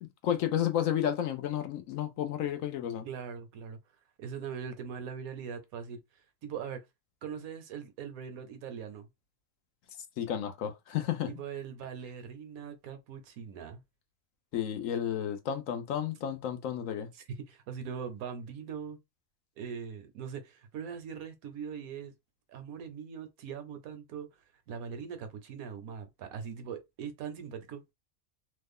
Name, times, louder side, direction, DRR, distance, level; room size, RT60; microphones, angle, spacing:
voice 1, 0.0-3.1 10.2-11.3 14.5-17.1, left 10 dB, 70° left, 0.9 m, -32 dB
voice 2, 3.0-3.8 4.2-6.0 6.4-6.9 7.2-9.1 11.3-13.8 17.1-19.0 19.6-22.1 22.5-24.3 24.7-27.8, right 7 dB, 75° right, 1.1 m, -41 dB
3.1 x 2.1 x 3.5 m
omnidirectional pair, 1.5 m